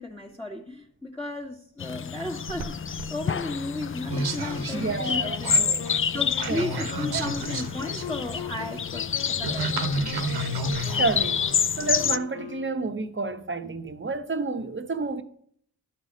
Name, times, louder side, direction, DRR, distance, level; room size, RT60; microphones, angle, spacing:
voice 1, 0.0-10.2, left 2 dB, 5° left, 1.4 m, -35 dB
sound 1, 1.8-12.2, left 7 dB, 35° left, 0.4 m, -29 dB
sound 2, 2.5-12.1, right 2 dB, 85° right, 1.1 m, -32 dB
Wind instrument woodwind instrument, 4.1-13.1, left 10 dB, 85° left, 0.6 m, -41 dB
voice 2, 4.7-5.8 6.5-6.7 7.1-7.2 10.8-11.4 11.8-15.2, right 3 dB, 30° right, 1.0 m, -30 dB
11.5 x 4.1 x 7.3 m
cardioid pair, 55°, 37 cm